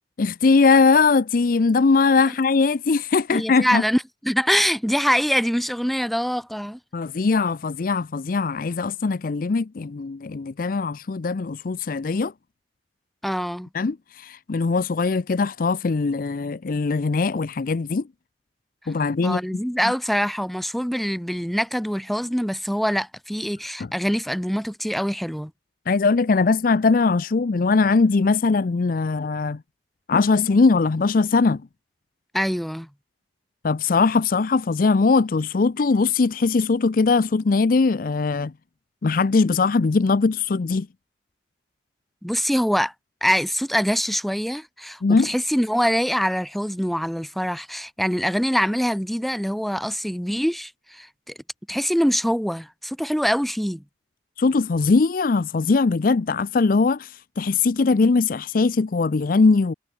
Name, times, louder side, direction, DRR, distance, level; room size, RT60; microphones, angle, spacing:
voice 1, 0.2-3.8 6.9-12.3 13.7-18.0 18.9-19.4 25.9-29.6 30.1-31.6 33.6-38.5 39.0-40.9 45.0-45.3 54.4-59.7, left 4 dB, 50° left, 0.5 m, -20 dB
voice 2, 3.3-6.8 13.2-13.7 19.2-25.5 32.3-32.9 42.2-42.9 43.2-51.3 51.7-53.8, equal, ahead, 1.4 m, -24 dB
head